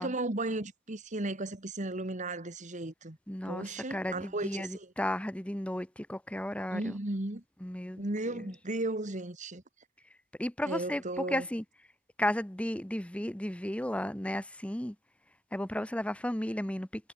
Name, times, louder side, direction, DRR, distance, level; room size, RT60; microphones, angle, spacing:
voice 1, 0.0-3.2 3.5-4.9 6.7-7.4 8.0-9.6 10.6-11.5, right 2 dB, 35° right, 1.8 m, -35 dB
voice 2, 3.3-6.9 7.6-8.5 10.4-11.6 12.2-14.9 15.5-17.1, left 1 dB, 5° left, 1.0 m, -34 dB
head